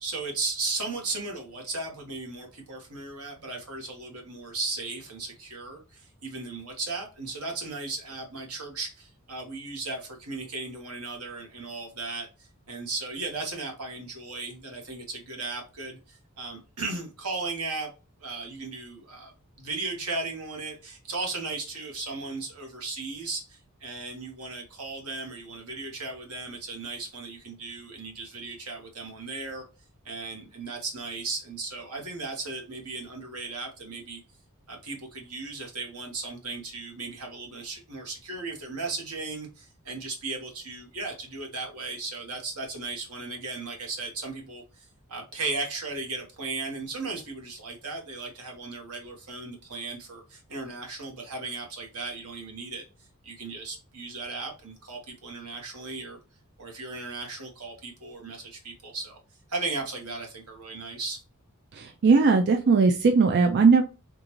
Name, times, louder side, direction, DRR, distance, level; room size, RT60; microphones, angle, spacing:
voice 1, 0.0-17.9 18.2-19.3 19.6-29.6 30.0-34.2 34.7-52.8 53.2-56.2 56.6-59.2 59.5-61.2, right 3 dB, 90° right, 1.3 m, -36 dB
voice 2, 61.7-63.8, right 4 dB, 50° right, 0.4 m, -19 dB
3.7 x 2.5 x 2.9 m
head